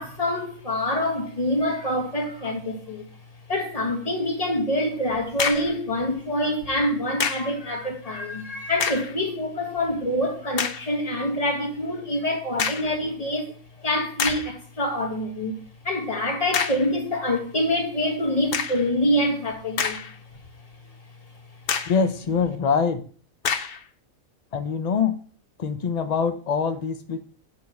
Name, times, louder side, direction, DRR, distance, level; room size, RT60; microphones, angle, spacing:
voice 1, 0.0-3.1 3.5-13.5 13.8-15.6 15.8-20.0, left 1 dB, 25° left, 1.5 m, -26 dB
sound 1, 5.1-5.8 7.2-7.6 8.7-9.2 9.8-9.9 10.6-10.9 12.6-13.0 13.7-13.8 14.2-14.6 16.5-16.9 18.5-18.9 19.5-20.3 20.7-20.8 21.7-22.1 23.4-23.8, left 6 dB, 55° left, 0.8 m, -27 dB
voice 2, 21.9-23.0 24.5-25.2 25.6-27.2, left 6 dB, 70° left, 0.3 m, -24 dB
7.0 x 3.5 x 6.3 m
omnidirectional pair, 1.4 m